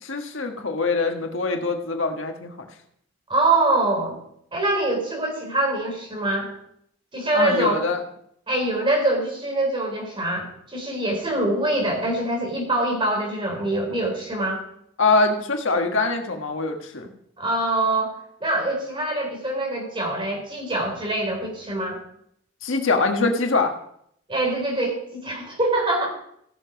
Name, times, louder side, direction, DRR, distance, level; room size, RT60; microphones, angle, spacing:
voice 1, 0.0-2.6 7.3-8.0 15.0-17.1 22.6-23.7, left 3 dB, 90° left, 4 dB, 1.5 m, -23 dB
voice 2, 3.3-4.2 4.5-6.5 7.1-7.8 8.5-14.6 17.4-18.1 18.4-22.0 24.3-26.1, right 2 dB, 25° right, 1 dB, 3.9 m, -24 dB
16.0 x 7.1 x 5.2 m, 0.72 s
head